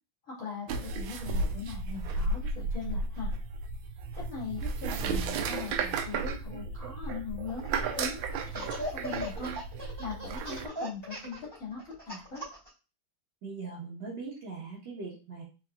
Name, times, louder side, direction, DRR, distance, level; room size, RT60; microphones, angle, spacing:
voice 1, 0.2-3.3 4.1-7.7 8.0-9.6 10.0-12.4, left 4 dB, 40° left, -5 dB, 2.4 m, -40 dB
sound 1, 0.7-10.7, right 3 dB, 80° right, 1.4 m, -34 dB
Laughter, 7.5-8.1 8.5-12.7, equal, 10° left, 2.4 m, -38 dB
voice 2, 13.4-15.4, right 4 dB, 65° right, -7 dB, 1.9 m, -40 dB
4.2 x 4.1 x 2.4 m, 0.32 s
omnidirectional pair, 2.2 m